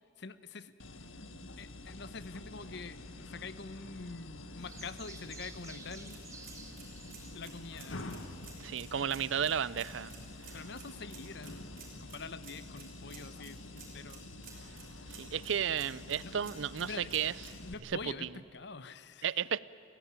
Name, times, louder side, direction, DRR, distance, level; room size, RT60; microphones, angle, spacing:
voice 1, 0.2-0.7 1.6-3.0 3.3-6.2 7.3-8.1 10.5-11.6 12.0-14.3 16.2-16.3 16.9-17.1 17.5-19.3, left 4 dB, 60° left, 14 dB, 0.9 m, -45 dB
sound 1, 0.8-17.7, left 2 dB, 90° left, 1.5 m, -48 dB
sound 2, 4.6-11.0, right 3 dB, 15° right, 1.6 m, -54 dB
sound 3, 5.9-17.5, right 4 dB, 45° right, 6.9 m, -55 dB
voice 2, 8.6-10.1 15.1-17.3 17.8-18.3 19.2-19.6, right 8 dB, 70° right, 19 dB, 0.5 m, -33 dB
29.5 x 16.5 x 9.5 m, 2.5 s
head